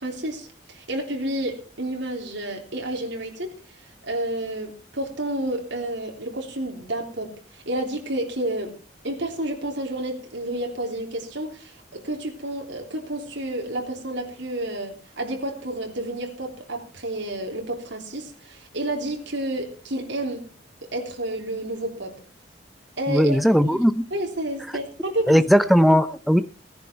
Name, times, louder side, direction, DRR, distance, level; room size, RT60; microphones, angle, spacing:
voice 1, 0.0-3.5 4.0-8.8 9.0-20.5 20.9-22.2 23.0-23.4 23.7-23.8 24.1-25.4, right 1 dB, 75° right, 1 dB, 3.6 m, -30 dB
voice 2, 23.1-24.0 25.3-26.4, equal, ahead, 12 dB, 0.6 m, -18 dB
17.5 x 10.5 x 4.6 m, 0.36 s
head